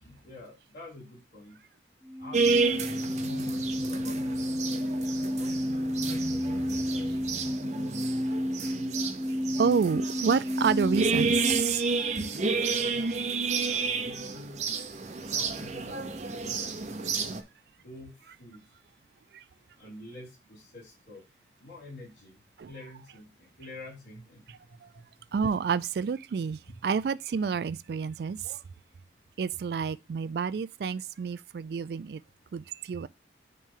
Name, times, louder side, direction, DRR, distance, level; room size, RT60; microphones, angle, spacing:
voice 1, 0.0-1.6 2.2-5.6 6.1-7.5 12.6-13.1 13.6-14.8 15.4-17.4 17.8-18.6 19.8-21.2 21.6-22.4 22.7-24.4 26.7-26.8, left 2 dB, 75° left, 4.6 m, -48 dB
sound 1, 2.0-11.6, equal, 15° left, 1.1 m, -31 dB
sound 2, 2.3-17.4, right 4 dB, 40° right, 0.7 m, -31 dB
voice 2, 9.6-11.8 19.3-19.4 22.6-22.7 24.8-24.9 25.3-28.6 29.4-32.2 32.5-33.1, right 6 dB, 60° right, 0.3 m, -29 dB
9.1 x 3.2 x 3.7 m
head